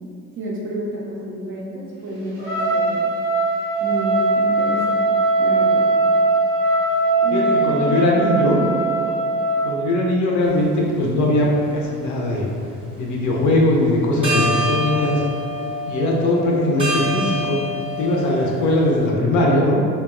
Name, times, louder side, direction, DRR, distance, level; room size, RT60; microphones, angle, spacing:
voice 1, 0.4-3.0 3.8-5.1 5.4-5.9 7.2-8.1 8.4-8.7, right 1 dB, 30° right, -4 dB, 0.4 m, -29 dB
Trumpet, 2.4-9.7, right 2 dB, 85° right, 0.7 m, -20 dB
voice 2, 7.3-8.6 9.6-12.5 13.0-15.2 15.9-17.6 18.0-19.8, left 1 dB, 45° left, -2 dB, 0.5 m, -20 dB
sound 1, 10.5-10.6 11.3-12.3 13.8-13.9 14.2-19.1, equal, 15° right, 0.8 m, -26 dB
2.7 x 2.1 x 2.4 m, 2.3 s
hypercardioid pair, 55°, 42 cm